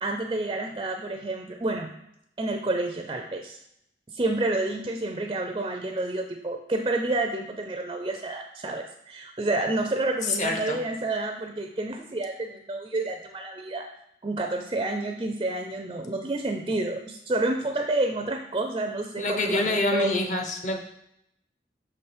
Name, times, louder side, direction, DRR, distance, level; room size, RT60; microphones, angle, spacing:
voice 1, 0.0-1.9 2.4-3.6 4.1-13.9 14.2-20.1, right 2 dB, 25° right, 4 dB, 0.4 m, -29 dB
voice 2, 10.2-10.8 19.2-20.8, left 2 dB, 45° left, 4 dB, 0.9 m, -26 dB
6.2 x 4.8 x 4.4 m, 0.77 s
head